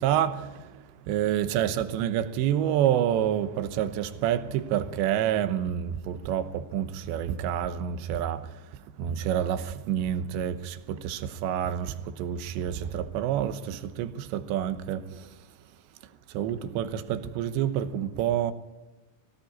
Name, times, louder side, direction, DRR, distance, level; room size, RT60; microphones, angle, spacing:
voice 1, 0.0-15.5 16.0-18.5, right 10 dB, 80° right, 3.3 m, -28 dB
21.0 x 17.5 x 9.5 m
omnidirectional pair, 5.1 m